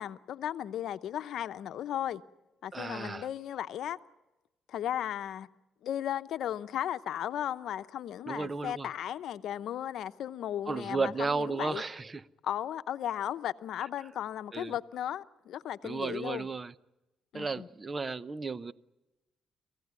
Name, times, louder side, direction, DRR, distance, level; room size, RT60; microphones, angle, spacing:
voice 1, 0.0-2.2 2.6-4.0 4.7-5.5 5.8-11.8 12.4-16.5 17.3-17.7, left 11 dB, 75° left, 0.8 m, -35 dB
voice 2, 2.7-3.3 8.3-8.9 10.7-12.2 14.5-14.7 15.8-16.7 17.3-18.7, right 4 dB, 30° right, 0.8 m, -34 dB
27.0 x 16.0 x 9.6 m
cardioid pair, 90°, 0 cm